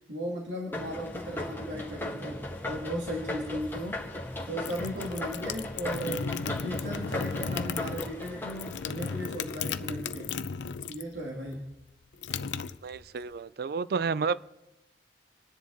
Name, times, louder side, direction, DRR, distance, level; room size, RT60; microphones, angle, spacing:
voice 1, 0.1-4.0 4.5-10.3 10.9-11.7, equal, 85° right, 2.5 m, -36 dB
sound 1, 0.7-9.8, left 1 dB, 10° left, 1.9 m, -37 dB
sound 2, 4.6-11.2 11.5-13.3, left 5 dB, 90° left, 0.6 m, -35 dB
voice 2, 12.8-14.4, right 5 dB, 60° right, 0.4 m, -31 dB
27.5 x 10.0 x 4.1 m
head